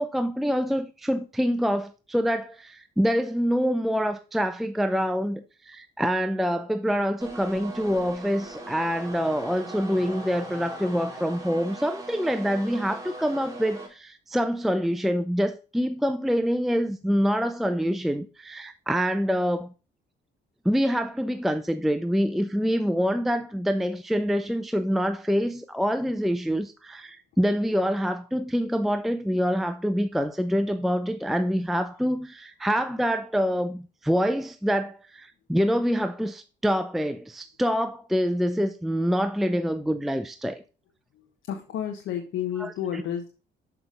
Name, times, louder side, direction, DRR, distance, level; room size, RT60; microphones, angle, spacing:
voice 1, 0.0-19.7 20.6-40.6 42.6-42.7, equal, ahead, 0.5 m, -26 dB
sound 1, 7.2-13.9, right 2 dB, 15° right, 3.2 m, -40 dB
voice 2, 41.1-43.3, left 9 dB, 80° left, 1.2 m, -31 dB
6.9 x 5.9 x 3.8 m
cardioid pair, 90°, 20 cm